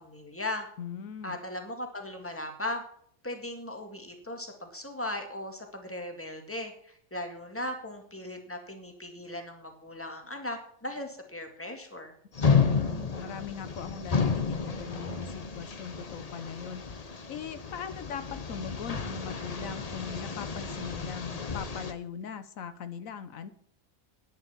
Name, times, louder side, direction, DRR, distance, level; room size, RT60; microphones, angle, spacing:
voice 1, 0.0-0.7 1.2-2.8 3.2-12.1, left 1 dB, 10° left, 4 dB, 2.0 m, -38 dB
voice 2, 0.8-1.4 12.5-23.5, left 7 dB, 80° left, 11 dB, 1.2 m, -40 dB
sound 1, 12.3-21.9, left 5 dB, 30° left, 0.9 m, -31 dB
10.5 x 9.8 x 5.8 m, 0.64 s
omnidirectional pair, 1.4 m